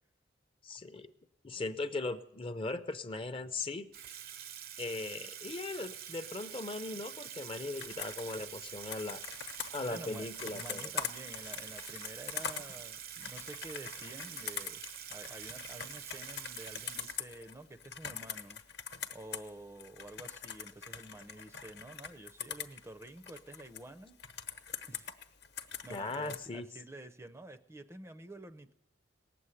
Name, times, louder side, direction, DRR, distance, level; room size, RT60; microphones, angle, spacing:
voice 1, 0.6-1.1 1.4-3.9 4.8-9.2 9.7-10.8 25.9-26.7, left 3 dB, 30° left, 10 dB, 0.6 m, -38 dB
Water tap faucet / Sink (filling or washing), 3.9-17.7, right 9 dB, 50° right, 0.6 m, -46 dB
Computer keyboard, 7.8-19.5 19.8-23.8 24.2-26.4, left 7 dB, 60° left, 1.0 m, -43 dB
voice 2, 9.9-14.8 15.1-18.6 19.1-24.1 24.9-25.1 25.8-28.7, right 1 dB, 15° right, 9 dB, 0.5 m, -49 dB
18.0 x 7.7 x 9.8 m, 0.83 s
head